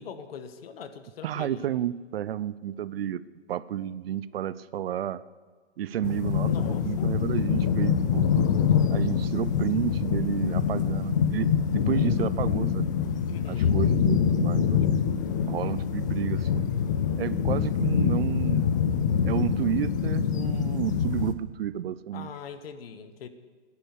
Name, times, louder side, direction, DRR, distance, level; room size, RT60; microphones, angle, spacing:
voice 1, 0.0-1.7 6.4-7.1 13.3-13.7 22.1-23.3, left 7 dB, 55° left, 10 dB, 1.4 m, -42 dB
voice 2, 1.2-3.2 3.5-5.2 5.8-6.5 6.8-8.3 8.9-12.9 13.5-15.2 15.5-16.7 17.2-18.7 19.2-22.3, right 11 dB, 55° right, 17 dB, 0.6 m, -31 dB
sound 1, 6.0-21.3, left 7 dB, 20° left, 0.4 m, -25 dB
14.0 x 10.5 x 8.3 m, 1.4 s
hypercardioid pair, 145°, 34 cm